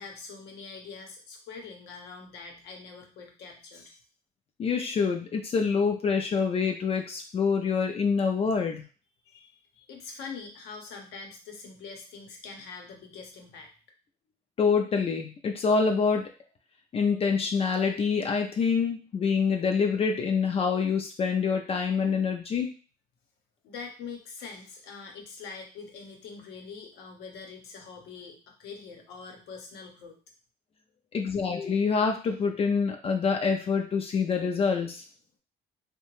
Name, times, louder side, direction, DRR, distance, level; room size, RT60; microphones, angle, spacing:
voice 1, 0.0-4.0 9.3-13.7 23.6-30.2, left 5 dB, 80° left, 2 dB, 0.8 m, -44 dB
voice 2, 4.6-8.8 14.6-16.3 16.9-22.7 31.1-35.0, left 5 dB, 35° left, 4 dB, 0.4 m, -26 dB
2.8 x 2.2 x 3.0 m, 0.36 s
cardioid pair, 110°, 17 cm